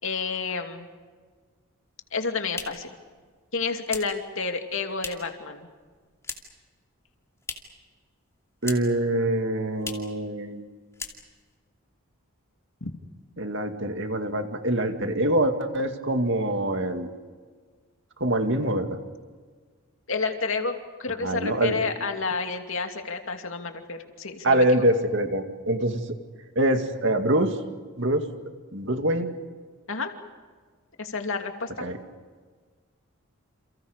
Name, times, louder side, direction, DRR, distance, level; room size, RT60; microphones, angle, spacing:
voice 1, 0.0-0.9 2.1-2.9 3.5-5.7 12.8-12.9 20.1-20.7 21.0-24.6 29.9-30.1 31.0-31.8, left 4 dB, 65° left, 4 dB, 2.6 m, -30 dB
sound 1, 2.0-5.4 5.7-6.7 6.9-7.9 8.1-9.1 9.3-9.4 9.8-10.2 10.5-10.7 10.9-11.6, left 4 dB, 15° left, 2.5 m, -39 dB
voice 2, 8.6-10.7 13.4-17.1 18.2-19.0 21.2-21.8 24.4-26.0 26.6-27.5 28.0-28.3 28.7-29.3 31.8-32.0, right 1 dB, 55° right, 6 dB, 2.2 m, -24 dB
29.5 x 29.0 x 5.2 m, 1.5 s
head